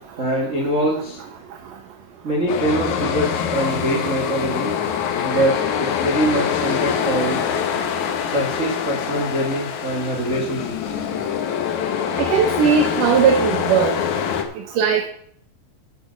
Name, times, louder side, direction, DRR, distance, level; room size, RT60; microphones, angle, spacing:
voice 1, 0.2-1.2 2.2-4.7 5.2-7.6 8.3-11.0, right 1 dB, 35° right, 0 dB, 1.2 m, -23 dB
sound 1, 2.5-14.4, left 8 dB, 65° left, 2.2 m, -24 dB
voice 2, 12.2-14.0 14.8-15.1, right 6 dB, 75° right, 4 dB, 2.5 m, -18 dB
12.5 x 6.9 x 5.2 m, 0.62 s
omnidirectional pair, 4.0 m